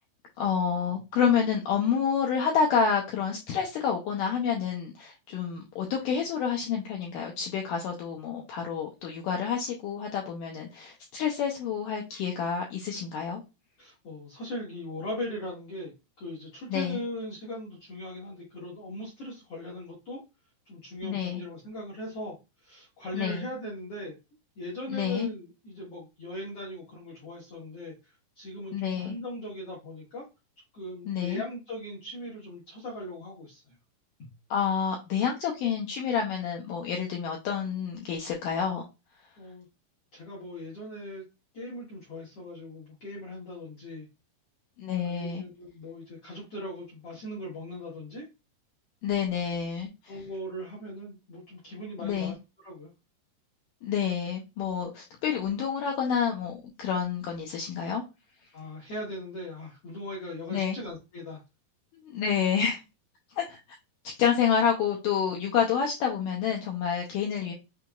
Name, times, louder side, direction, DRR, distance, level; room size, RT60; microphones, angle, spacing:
voice 1, 0.4-13.4 16.7-17.0 21.0-21.4 23.1-23.5 24.9-25.3 28.7-29.2 31.1-31.4 34.5-38.8 44.8-45.4 49.0-50.1 52.0-52.4 53.8-58.0 60.5-60.8 62.0-62.8 63.4-63.6 64.0-67.5, left 7 dB, 90° left, 0 dB, 1.9 m, -28 dB
voice 2, 13.8-20.2 20.6-24.1 24.6-30.2 30.7-33.8 34.2-34.3 39.4-39.7 40.1-41.2 41.5-44.1 45.0-48.2 50.1-52.9 58.5-61.4, left 1 dB, 75° left, -5 dB, 1.3 m, -39 dB
6.2 x 2.9 x 2.3 m, 0.26 s
omnidirectional pair, 4.7 m